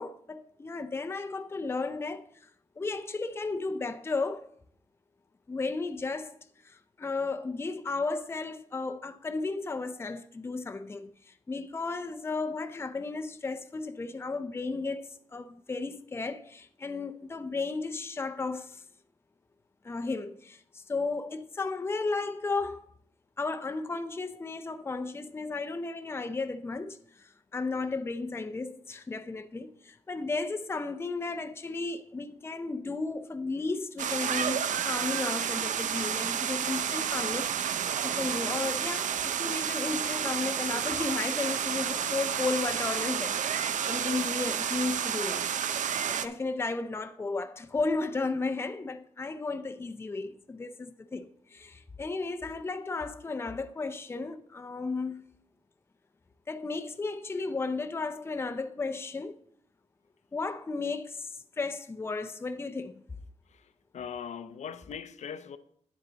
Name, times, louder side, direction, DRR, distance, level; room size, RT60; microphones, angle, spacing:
voice 1, 0.0-2.5 2.8-4.4 5.5-6.4 6.6-18.8 19.8-22.9 23.4-43.4 43.9-45.4 46.1-55.2 56.5-59.4 60.3-63.0, left 3 dB, 20° left, 0.5 m, -34 dB
sound 1, 34.0-46.3, right 8 dB, 80° right, 0.5 m, -30 dB
voice 2, 63.9-65.6, left 7 dB, 70° left, 0.6 m, -40 dB
9.6 x 8.6 x 3.9 m
wide cardioid pair, 140°, 13 cm